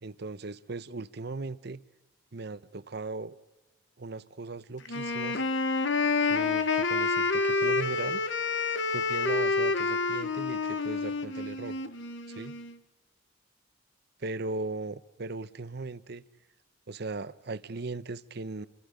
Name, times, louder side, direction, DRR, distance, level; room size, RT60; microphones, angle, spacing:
voice 1, 0.0-1.8 2.3-3.3 4.0-5.4 6.2-8.2 8.9-11.8 12.3-12.6 14.2-16.2 16.9-18.7, right 3 dB, 60° right, 0.8 m, -38 dB
Wind instrument woodwind instrument, 4.9-12.7, left 3 dB, 70° left, 1.2 m, -28 dB
29.5 x 24.5 x 5.2 m
head